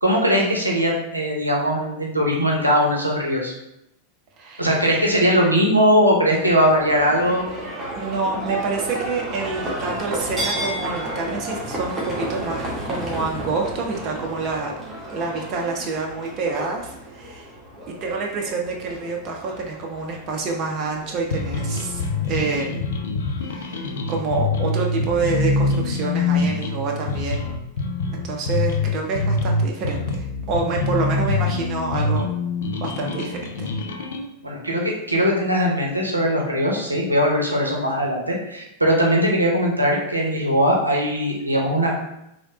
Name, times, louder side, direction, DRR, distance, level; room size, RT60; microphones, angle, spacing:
voice 1, 0.0-3.5 4.6-7.4 34.4-42.0, equal, 85° right, -1 dB, 0.6 m, -20 dB
voice 2, 4.4-4.7 7.3-17.5 17.9-22.8 23.4-27.5 28.1-32.3 32.8-33.7, right 4 dB, 35° right, 0 dB, 0.5 m, -27 dB
Livestock farm animals working animals, 6.3-22.8, right 1 dB, 20° right, 1.0 m, -32 dB
sound 1, 21.3-34.3, left 3 dB, 65° left, 0.3 m, -25 dB
3.1 x 2.7 x 2.7 m, 0.82 s
figure-of-eight pair, 90°, 0 cm